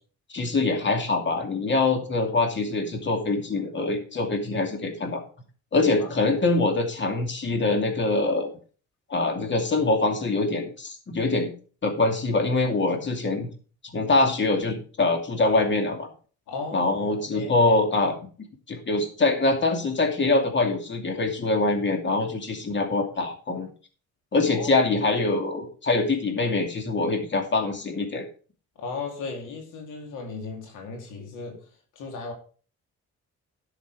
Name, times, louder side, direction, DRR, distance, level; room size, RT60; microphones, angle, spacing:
voice 1, 0.3-5.2 5.7-8.5 9.1-11.5 11.8-13.5 13.9-16.1 16.7-18.1 18.7-23.7 24.3-28.2, left 3 dB, 40° left, 2.6 m, -24 dB
voice 2, 16.5-17.6 24.5-24.8 28.8-31.6 31.9-32.3, left 4 dB, 90° left, 2.7 m, -36 dB
11.5 x 6.6 x 4.7 m
cardioid pair, 90°, 30 cm